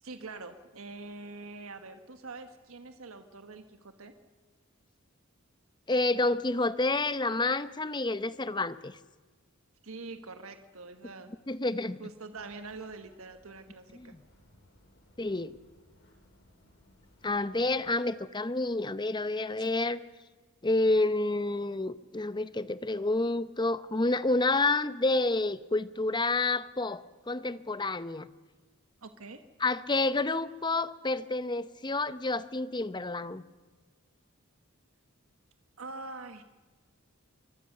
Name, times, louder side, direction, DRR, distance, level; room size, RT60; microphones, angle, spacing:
voice 1, 0.0-4.1 9.8-11.3 12.0-14.1 19.6-19.7 29.0-29.4 35.8-36.4, right 3 dB, 85° right, 8 dB, 1.4 m, -44 dB
voice 2, 5.9-9.0 11.5-12.0 13.9-14.2 15.2-15.6 17.2-20.0 20.6-28.3 29.6-33.4, left 2 dB, 20° left, 14 dB, 0.8 m, -29 dB
sound 1, 12.3-17.9, left 1 dB, 55° left, 6.4 m, -62 dB
24.5 x 22.5 x 6.7 m, 1.3 s
head